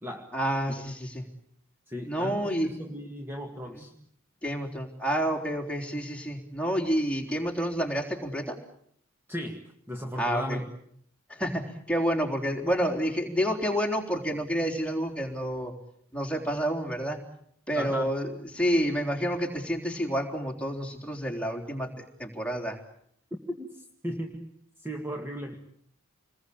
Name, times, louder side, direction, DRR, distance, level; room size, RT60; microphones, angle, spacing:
voice 1, 0.3-1.2 2.0-2.7 3.7-3.9 4.4-8.6 10.1-10.6 11.3-15.7 16.1-17.2 17.7-22.8, equal, 5° left, 1 dB, 3.8 m, -29 dB
voice 2, 1.9-3.9 9.3-10.6 17.7-18.1 23.6-24.5 24.8-25.6, equal, 10° right, 3 dB, 1.9 m, -36 dB
28.0 x 21.0 x 8.7 m, 0.67 s
head